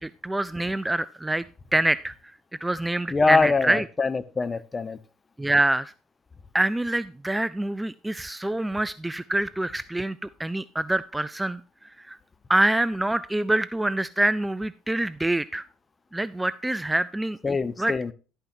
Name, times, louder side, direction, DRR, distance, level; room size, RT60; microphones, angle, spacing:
voice 1, 0.0-1.4 1.7-2.1 2.6-3.8 5.4-5.9 6.5-11.6 12.0-12.2 12.5-15.6 16.1-18.1, right 1 dB, 10° right, 17 dB, 0.3 m, -26 dB
voice 2, 3.1-5.0 17.4-18.1, left 4 dB, 25° left, 13 dB, 0.8 m, -24 dB
11.5 x 8.9 x 2.6 m, 0.34 s
hypercardioid pair, 65°, 0 cm